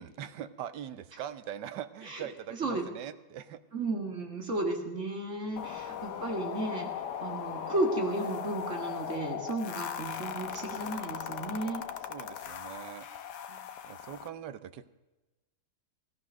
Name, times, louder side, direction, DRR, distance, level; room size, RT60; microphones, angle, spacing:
voice 1, 0.0-3.6 5.5-5.6 12.1-13.1 13.9-14.9, right 10 dB, 85° right, 13 dB, 1.4 m, -42 dB
voice 2, 3.7-11.8 13.5-13.6, right 2 dB, 45° right, 3 dB, 2.2 m, -34 dB
sound 1, 5.6-14.3, left 8 dB, 75° left, 1.5 m, -38 dB
14.5 x 13.5 x 6.3 m, 1.1 s
omnidirectional pair, 1.8 m